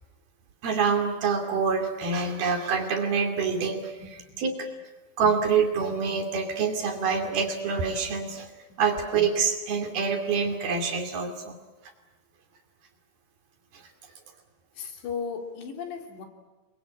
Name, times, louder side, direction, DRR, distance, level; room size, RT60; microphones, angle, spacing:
voice 1, 0.6-3.9 4.4-4.7 5.2-8.5 8.8-11.5, right 5 dB, 65° right, 5 dB, 4.4 m, -26 dB
voice 2, 4.0-4.4 14.8-16.3, left 6 dB, 85° left, 4 dB, 5.4 m, -36 dB
30.0 x 22.5 x 8.7 m, 1.2 s
omnidirectional pair, 4.8 m